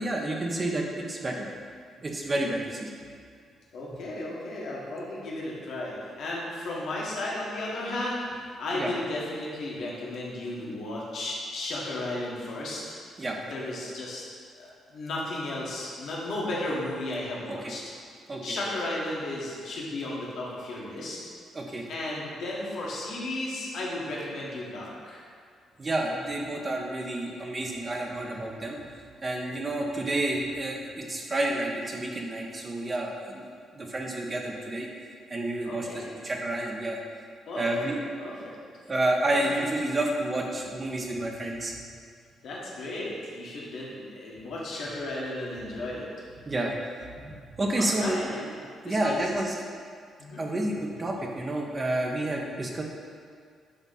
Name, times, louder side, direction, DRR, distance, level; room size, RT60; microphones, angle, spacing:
voice 1, 0.0-1.5 2.0-2.9 8.7-8.9 13.2-13.4 17.5-17.7 18.3-18.6 21.5-21.9 25.8-28.8 29.2-33.4 33.7-34.9 35.3-37.0 37.5-38.0 38.9-41.7 46.5-46.7 47.2-48.2 48.8-49.6 50.4-52.8, right 1 dB, 35° right, 0 dB, 1.2 m, -30 dB
voice 2, 3.7-13.0 13.5-14.2 14.6-17.8 18.4-21.2 21.9-25.2 35.6-36.2 37.5-37.9 38.2-38.6 39.3-39.7 42.4-46.1 47.8-48.6 48.8-49.3 50.2-50.4, left 1 dB, 60° left, -4 dB, 1.6 m, -34 dB
9.9 x 3.5 x 4.3 m, 2.1 s
figure-of-eight pair, 40°, 0 cm